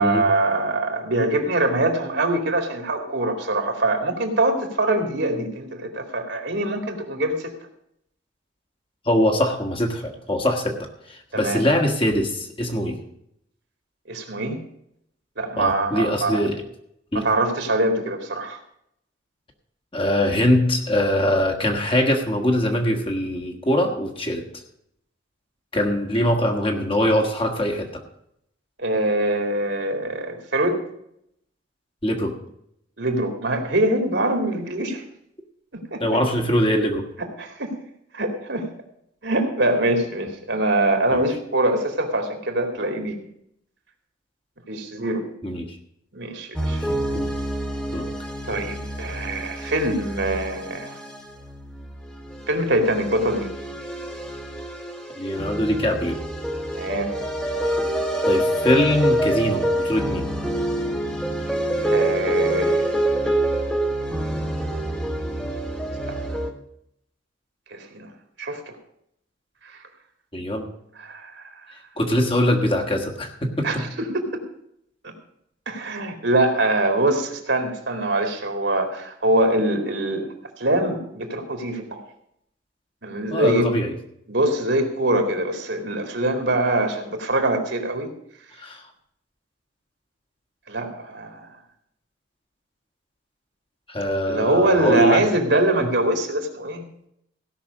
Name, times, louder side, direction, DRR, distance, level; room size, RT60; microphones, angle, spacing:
voice 1, 0.0-7.5 11.3-11.6 14.1-14.6 15.4-16.4 17.1-18.6 28.8-30.8 33.0-35.0 35.7-36.2 37.2-37.7 38.1-38.7 39.2-43.2 44.7-45.2 46.1-46.8 48.5-51.0 52.5-53.5 56.7-57.1 61.9-62.9 66.1-66.2 67.7-68.1 68.4-68.8 69.6-69.8 71.0-71.5 73.6-74.4 75.0-75.1 75.7-80.3 80.6-82.0 83.0-83.7 84.3-88.1 90.7-91.5 94.3-96.9, right 1 dB, 65° right, 4 dB, 2.4 m, -23 dB
voice 2, 9.1-13.0 15.6-16.6 17.1-17.3 19.9-24.4 25.7-28.0 32.0-32.4 36.0-37.1 45.4-45.8 46.7-46.8 47.1-47.3 47.9-48.1 55.2-56.2 58.2-60.3 70.3-70.7 72.0-73.8 83.3-83.9 88.6-88.8 93.9-95.2 95.8-95.9, left 1 dB, 25° left, 2 dB, 1.7 m, -22 dB
sound 1, 46.6-66.5, right 1 dB, 5° left, 1.3 m, -26 dB
16.5 x 6.2 x 6.3 m, 0.74 s
head